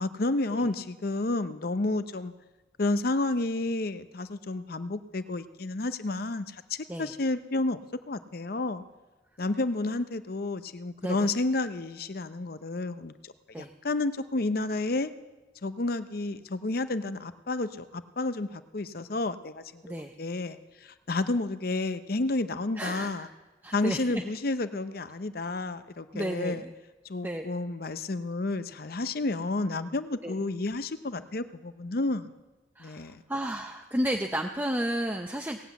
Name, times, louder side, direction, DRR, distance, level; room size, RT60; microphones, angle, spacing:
voice 1, 0.0-2.3 2.8-7.8 8.1-8.8 9.4-15.1 15.6-23.3 23.7-26.6 27.0-32.4 32.8-33.2, left 2 dB, 55° left, 12 dB, 0.7 m, -31 dB
voice 2, 22.8-23.3 23.6-24.2 26.1-26.7 27.2-27.5 30.2-30.3 32.8-35.6, right 1 dB, 10° right, 3 dB, 0.6 m, -32 dB
18.5 x 7.9 x 8.2 m, 1.1 s
head